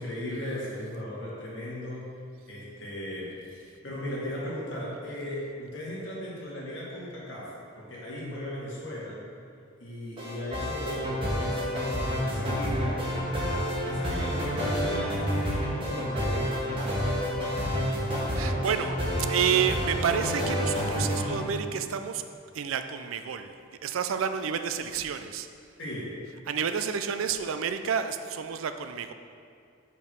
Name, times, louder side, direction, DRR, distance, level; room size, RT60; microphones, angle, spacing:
voice 1, 0.0-2.1 2.5-9.2 9.8-13.0 13.9-17.1 25.8-26.2, left 1 dB, 65° left, -6 dB, 1.9 m, -37 dB
sound 1, 10.2-21.4, equal, 25° right, 1.4 m, -29 dB
voice 2, 18.3-19.0 19.3-22.2 22.5-23.6 23.8-25.5 26.5-29.1, right 7 dB, 90° right, 9 dB, 0.4 m, -29 dB
5.4 x 4.7 x 6.2 m, 2.3 s
head